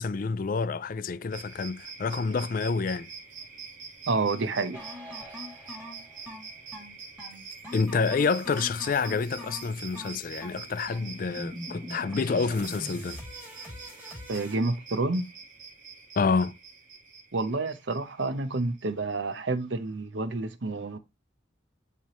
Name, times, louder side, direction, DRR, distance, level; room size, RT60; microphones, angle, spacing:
voice 1, 0.0-3.1 7.7-13.2 16.2-16.6, left 4 dB, 45° left, 0.4 m, -28 dB
sound 1, 1.3-19.3, right 5 dB, 40° right, 1.6 m, -45 dB
voice 2, 4.1-4.8 14.3-15.2 17.3-21.0, right 3 dB, 70° right, 0.8 m, -29 dB
sound 2, 4.7-14.6, left 1 dB, 10° right, 2.4 m, -43 dB
10.0 x 3.4 x 3.0 m
head